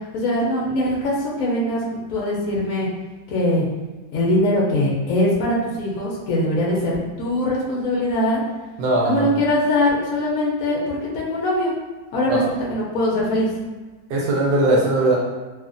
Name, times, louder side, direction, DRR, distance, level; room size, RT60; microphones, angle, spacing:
voice 1, 0.1-2.9 3.3-3.6 4.1-8.4 9.0-11.7 12.1-13.5, left 1 dB, 65° left, -4 dB, 0.9 m, -22 dB
voice 2, 8.8-9.4 12.3-12.4 14.1-15.2, right 2 dB, 70° right, -2 dB, 1.0 m, -19 dB
3.0 x 2.4 x 2.5 m, 1.2 s
omnidirectional pair, 2.0 m